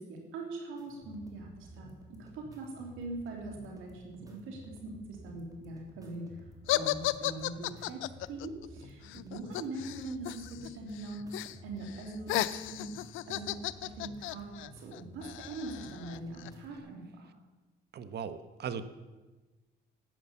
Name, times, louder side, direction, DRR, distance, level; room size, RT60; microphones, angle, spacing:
voice 1, 0.0-6.4 6.7-8.0 8.3-11.4 11.6-13.0 13.3-14.5 14.7-17.3, right 2 dB, 85° right, 1 dB, 3.2 m, -42 dB
sound 1, 0.8-16.8, equal, 15° right, 3.2 m, -53 dB
sound 2, 6.7-10.7 10.9-11.6 11.9-16.5, left 15 dB, 80° left, 0.5 m, -35 dB
voice 2, 17.9-18.8, right 7 dB, 55° right, 12 dB, 1.1 m, -38 dB
12.5 x 9.1 x 7.3 m, 1.2 s
cardioid pair, 90°, 20 cm